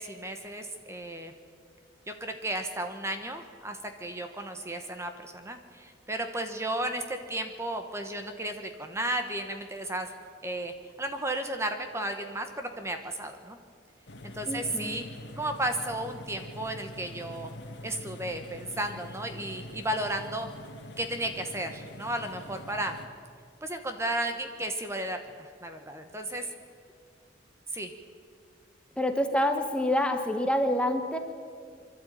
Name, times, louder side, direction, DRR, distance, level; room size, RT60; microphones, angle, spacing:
voice 1, 0.0-1.3 2.1-10.1 10.4-13.6 14.2-15.0 15.4-17.5 17.8-20.5 21.0-23.0 23.6-26.4 27.7-27.9, right 1 dB, 15° right, 6 dB, 1.1 m, -34 dB
sound 1, 14.1-23.1, left 1 dB, 60° left, 1.6 m, -44 dB
voice 2, 14.5-15.0 29.0-31.2, left 1 dB, 5° left, 5 dB, 1.1 m, -27 dB
25.0 x 12.0 x 9.1 m, 2.2 s
head